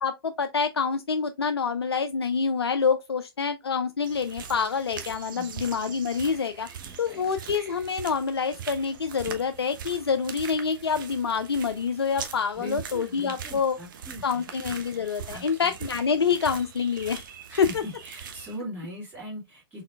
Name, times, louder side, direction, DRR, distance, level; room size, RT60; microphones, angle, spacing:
voice 1, 0.0-6.7 7.0-13.7 14.2-17.2 17.6-17.8, left 6 dB, 80° left, 0.4 m, -27 dB
sound 1, 4.0-18.6, right 7 dB, 55° right, 0.9 m, -42 dB
voice 2, 6.8-7.3 12.5-14.2 15.2-15.7 17.5-19.8, equal, 15° right, 2.5 m, -41 dB
4.3 x 3.8 x 2.3 m
figure-of-eight pair, 115°, 13 cm